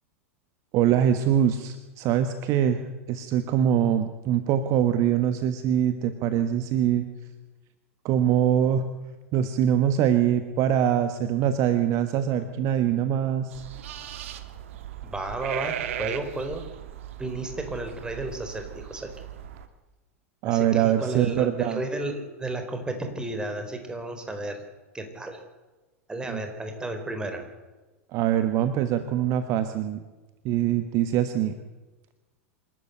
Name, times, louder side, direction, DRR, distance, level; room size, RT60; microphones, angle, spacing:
voice 1, 0.7-2.8 3.1-7.1 8.0-8.8 9.3-13.6 20.4-21.8 26.2-26.4 28.1-30.0 30.4-31.5, right 10 dB, 45° right, 10 dB, 1.4 m, -23 dB
sound 1, 13.5-19.7, right 10 dB, 65° right, 1.8 m, -37 dB
voice 2, 15.0-16.7 17.2-19.1 20.4-24.6 24.9-25.4 26.1-27.5, right 2 dB, 10° right, 6 dB, 4.2 m, -33 dB
27.0 x 12.5 x 8.2 m, 1.2 s
figure-of-eight pair, 90°, 8 cm